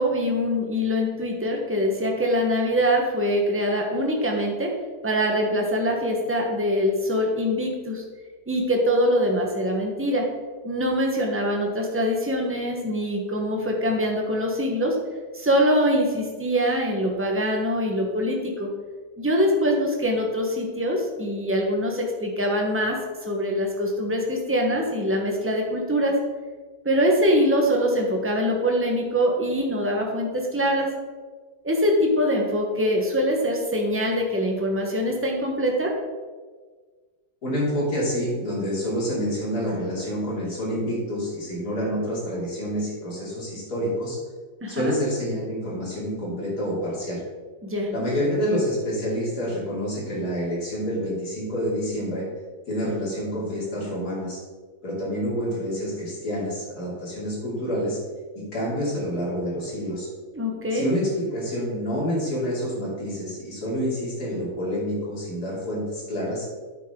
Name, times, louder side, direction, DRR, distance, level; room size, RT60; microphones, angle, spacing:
voice 1, 0.0-4.7 5.0-8.0 8.5-10.3 10.6-15.0 15.3-18.7 19.2-26.2 26.8-30.9 31.6-35.9 44.6-44.9 47.6-47.9 60.3-60.9, equal, 10° right, 1 dB, 0.9 m, -23 dB
voice 2, 37.4-44.2 44.7-47.2 47.9-52.2 52.7-54.4 54.8-58.0 58.4-60.1 60.7-66.4, equal, 50° left, -6 dB, 3.6 m, -28 dB
9.5 x 7.6 x 3.8 m, 1.4 s
omnidirectional pair, 2.2 m